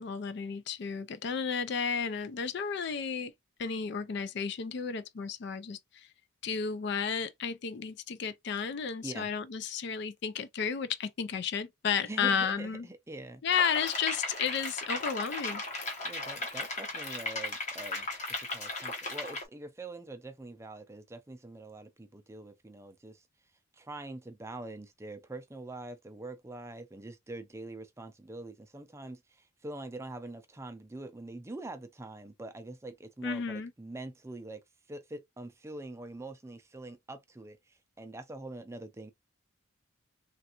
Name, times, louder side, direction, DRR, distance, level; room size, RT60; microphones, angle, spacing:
voice 1, 0.0-3.3 3.6-6.1 6.4-12.9 13.4-15.6 33.2-33.7, left 6 dB, 55° left, 0.4 m, -33 dB
voice 2, 12.0-13.4 16.0-18.1 18.4-23.3 23.7-34.6 34.9-39.1, right 2 dB, 15° right, 0.4 m, -44 dB
sound 1, 13.5-19.4, left 2 dB, 35° left, 1.0 m, -36 dB
3.2 x 2.5 x 2.9 m
head